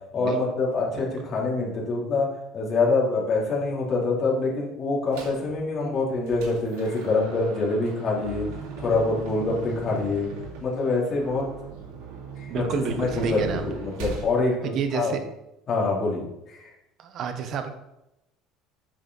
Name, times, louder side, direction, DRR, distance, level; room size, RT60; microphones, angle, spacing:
voice 1, 0.1-8.5 8.8-10.3 10.6-11.5 12.4-12.6 13.0-15.2 15.7-16.7, left 3 dB, 35° left, -4 dB, 3.1 m, -25 dB
sound 1, 5.1-5.5 5.9-14.3, right 5 dB, 90° right, 2.5 m, -38 dB
voice 2, 12.5-13.6 14.6-15.2 17.0-17.7, right 7 dB, 45° right, 7 dB, 0.9 m, -30 dB
8.7 x 6.2 x 4.0 m, 0.87 s
cardioid pair, 140°, 0 cm